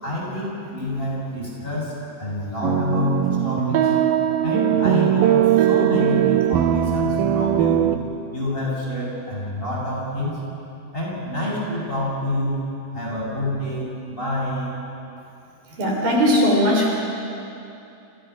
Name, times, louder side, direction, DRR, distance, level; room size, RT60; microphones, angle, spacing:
voice 1, 0.0-1.9 2.2-3.9 4.4-7.9 8.3-10.4 10.9-12.6 12.9-14.8, left 1 dB, 10° left, -5 dB, 6.8 m, -27 dB
sound 1, 2.6-8.0, right 11 dB, 75° right, 2.2 m, -19 dB
voice 2, 15.8-16.9, equal, 60° right, -1 dB, 5.5 m, -18 dB
30.0 x 28.5 x 5.9 m, 2.8 s
omnidirectional pair, 4.7 m